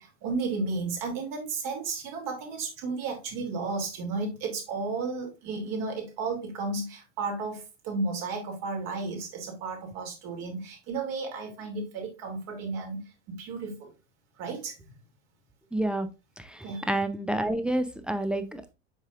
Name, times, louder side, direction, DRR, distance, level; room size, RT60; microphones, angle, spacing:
voice 1, 0.0-13.0 13.3-13.9 14.4-14.8 16.6-16.9, right 3 dB, 50° right, 2.8 m, -33 dB
voice 2, 15.7-16.1 16.9-18.7, right 1 dB, 5° right, 0.7 m, -28 dB
8.0 x 5.5 x 2.4 m
figure-of-eight pair, 75°, 35 cm